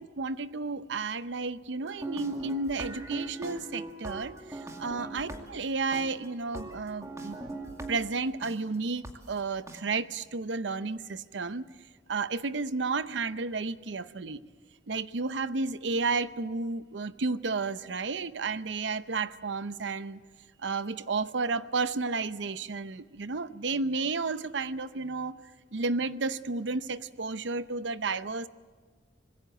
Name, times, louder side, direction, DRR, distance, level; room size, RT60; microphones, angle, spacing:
voice 1, 0.0-7.5 7.9-11.6 12.1-14.4 14.9-20.2 20.6-25.3 25.7-28.5, right 4 dB, 85° right, 14 dB, 0.7 m, -32 dB
sound 1, 1.8-8.5 9.0-9.1 9.7-9.8, right 2 dB, 20° right, 2.3 m, -40 dB
25.5 x 20.5 x 7.9 m, 1.5 s
head